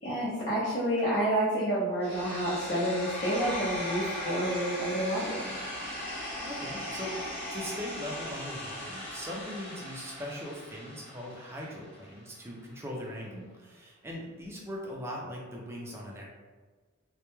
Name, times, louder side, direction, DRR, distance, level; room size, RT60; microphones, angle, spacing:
voice 1, 0.0-5.6, right 1 dB, 50° left, -10 dB, 0.6 m, -29 dB
sound 1, 2.0-12.0, left 1 dB, 30° left, 0.9 m, -38 dB
voice 2, 6.4-16.3, equal, 10° right, -3 dB, 0.4 m, -40 dB
2.2 x 2.1 x 3.0 m, 1.4 s
head